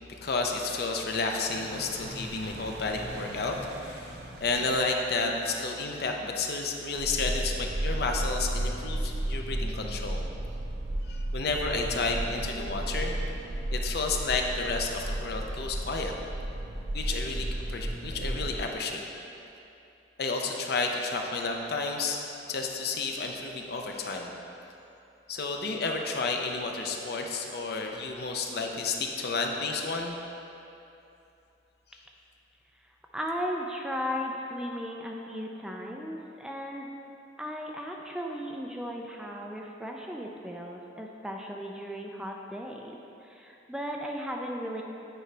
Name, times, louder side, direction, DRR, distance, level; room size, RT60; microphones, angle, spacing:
voice 1, 0.1-10.2 11.0-13.2 13.7-16.1 16.9-19.0 20.2-24.3 25.3-30.2, left 3 dB, 60° left, 2 dB, 0.6 m, -31 dB
sound 1, 1.5-4.9 6.9-18.6, right 1 dB, 65° right, 0.6 m, -34 dB
voice 2, 33.1-36.9 37.4-44.8, equal, 5° right, 0 dB, 0.4 m, -36 dB
9.2 x 4.9 x 3.3 m, 2.8 s
head